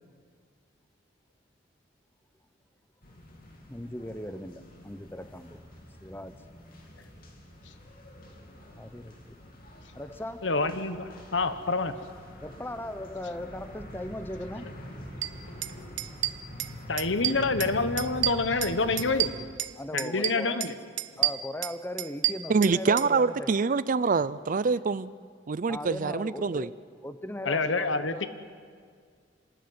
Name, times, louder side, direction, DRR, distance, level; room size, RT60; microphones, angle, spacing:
sound 1, 3.0-19.3, equal, 50° left, 3.0 m, -45 dB
voice 1, 3.7-5.6 6.0-6.4 8.7-9.3 9.9-10.5 12.4-14.7 19.7-20.7 21.2-23.5 25.7-26.8 27.0-28.3, left 1 dB, 10° left, 11 dB, 0.9 m, -38 dB
voice 2, 10.4-11.9 16.9-19.3 19.9-20.7 27.4-28.3, left 3 dB, 80° left, 10 dB, 1.2 m, -27 dB
sound 2, 15.2-15.3 15.6-15.7 16.0-16.7 17.0-17.7 18.0-19.7 20.0-20.7 21.0-23.1, right 14 dB, 75° right, 0.7 m, -29 dB
voice 3, 22.5-25.1 25.5-26.7, right 4 dB, 45° right, 17 dB, 0.5 m, -25 dB
27.0 x 13.0 x 9.7 m, 2.1 s
head